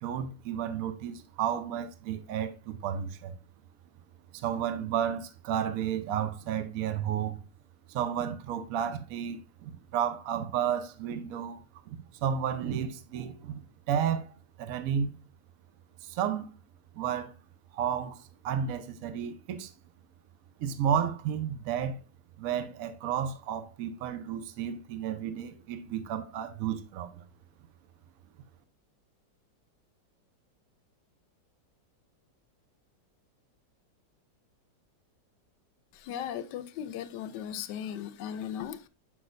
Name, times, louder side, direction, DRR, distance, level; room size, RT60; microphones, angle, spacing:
voice 1, 0.0-3.3 4.3-7.4 7.9-11.6 11.9-15.1 16.0-16.5 16.9-17.3 17.7-19.7 20.6-22.0 22.4-27.2, right 8 dB, 65° right, 0.9 m, -32 dB
voice 2, 36.0-38.9, left 9 dB, 75° left, 1.1 m, -37 dB
7.2 x 6.1 x 2.5 m
omnidirectional pair, 2.0 m